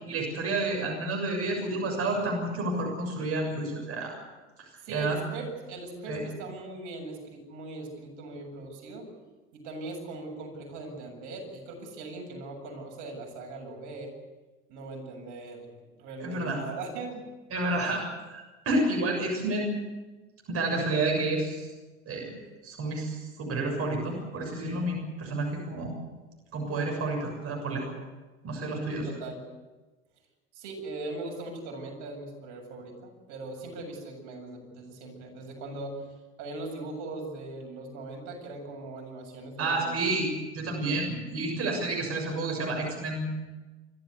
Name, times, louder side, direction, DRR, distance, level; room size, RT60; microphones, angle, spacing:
voice 1, 0.1-4.1 4.6-5.2 6.1-6.2 16.2-16.6 17.5-19.7 20.5-21.7 22.1-25.9 26.5-27.9 28.4-29.1 39.6-43.3, right 2 dB, 45° right, 2 dB, 6.9 m, -30 dB
voice 2, 4.8-9.1 9.5-14.1 14.7-17.3 29.1-29.4 30.5-36.1 36.4-40.0, right 2 dB, 60° right, 3 dB, 7.9 m, -40 dB
28.0 x 13.5 x 8.2 m, 1.2 s
hypercardioid pair, 85°, 34 cm